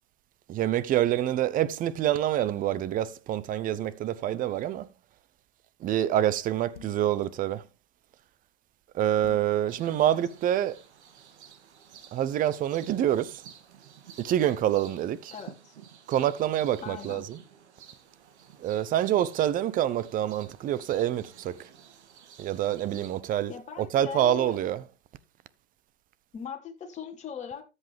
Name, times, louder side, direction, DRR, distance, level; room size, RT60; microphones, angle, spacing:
voice 1, 0.5-4.9 5.8-7.6 8.9-10.8 12.1-13.4 14.2-15.3 16.1-17.4 18.6-21.7 22.4-24.9, right 11 dB, 25° right, 0.8 m, -27 dB
sound 1, 6.7-7.1 9.2-9.6, left 10 dB, 75° left, 2.1 m, -47 dB
sound 2, 9.7-23.2, right 8 dB, 70° right, 2.4 m, -52 dB
voice 2, 15.3-15.7 16.8-17.2 23.5-24.5 26.3-27.6, left 7 dB, 20° left, 3.3 m, -39 dB
13.5 x 8.1 x 3.5 m
hypercardioid pair, 125°, 35 cm